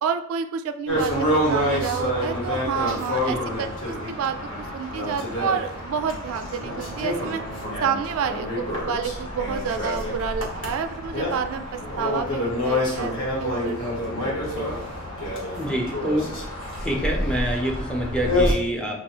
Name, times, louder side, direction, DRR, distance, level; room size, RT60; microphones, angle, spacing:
voice 1, 0.0-7.4 7.8-14.1 14.6-14.7, right 7 dB, 80° right, 8 dB, 0.3 m, -29 dB
sound 1, 0.9-18.5, left 1 dB, 65° left, 1.2 m, -27 dB
voice 2, 15.6-16.4 16.8-19.0, right 1 dB, 5° left, -1 dB, 0.6 m, -26 dB
4.7 x 2.6 x 2.9 m, 0.75 s
head